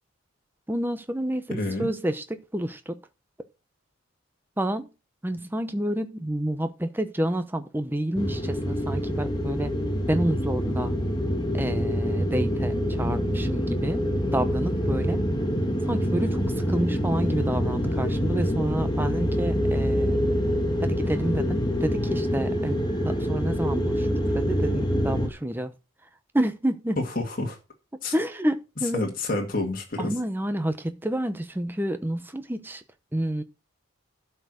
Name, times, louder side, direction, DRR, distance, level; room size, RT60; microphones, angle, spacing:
voice 1, 0.7-3.0 4.6-4.9 5.2-9.7 10.1-10.9 11.5-14.1 14.3-15.2 15.8-20.2 20.8-22.8 23.0-25.7 26.3-27.0 27.9-29.0 30.0-32.8 33.1-33.4, right 1 dB, 10° right, 0.8 m, -29 dB
voice 2, 1.5-1.9 27.2-27.6 28.0-28.1 28.9-30.1, left 2 dB, 40° left, 2.1 m, -28 dB
sound 1, 8.1-25.3, equal, 20° left, 1.3 m, -26 dB
12.0 x 4.6 x 6.3 m
head